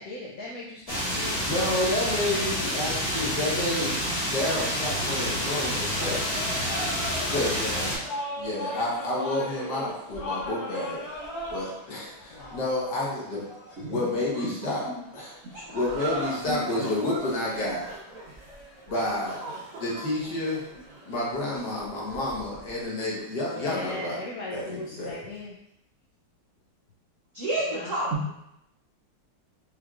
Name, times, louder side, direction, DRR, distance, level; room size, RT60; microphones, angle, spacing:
voice 1, 0.0-1.5 6.0-6.3 12.3-12.6 23.4-25.6 27.7-28.0, left 2 dB, 80° left, -4 dB, 0.8 m, -38 dB
sound 1, 0.9-8.0, equal, 15° left, 1.1 m, -28 dB
voice 2, 1.4-6.2 7.3-7.9 8.4-11.0 11.5-13.5 13.9-14.9 15.1-17.9 18.9-19.4 19.8-20.6 21.0-24.2 24.5-25.2, left 1 dB, 60° left, -5 dB, 1.7 m, -30 dB
sound 2, 4.0-22.8, equal, 35° left, 0.6 m, -41 dB
sound 3, 15.7-22.4, right 2 dB, 85° right, 1.9 m, -39 dB
voice 3, 16.4-16.9 27.3-28.3, right 1 dB, 65° right, -6 dB, 0.7 m, -31 dB
5.0 x 3.1 x 2.4 m, 0.81 s
omnidirectional pair, 2.2 m